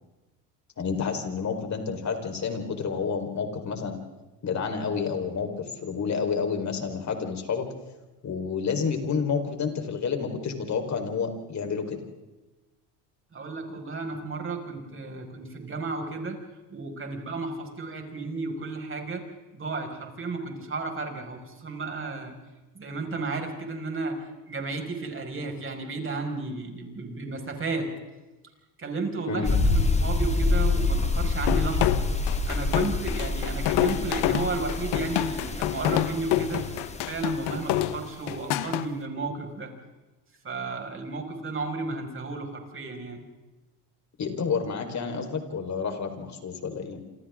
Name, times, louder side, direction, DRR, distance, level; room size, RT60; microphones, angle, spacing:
voice 1, 0.8-4.0 4.4-7.7 8.2-12.0 29.3-29.6 44.2-47.0, left 5 dB, 40° left, 5 dB, 4.5 m, -29 dB
voice 2, 13.3-16.4 16.7-19.2 19.5-22.3 22.7-24.2 24.5-27.9 28.8-32.0 32.5-36.6 37.1-39.7 40.4-43.2, right 3 dB, 30° right, 3 dB, 5.9 m, -33 dB
sound 1, 29.4-37.9, left 3 dB, 15° left, 2.2 m, -27 dB
sound 2, 31.5-38.9, left 14 dB, 70° left, 1.3 m, -27 dB
28.0 x 27.5 x 3.8 m, 1.1 s
supercardioid pair, 100°, 42 cm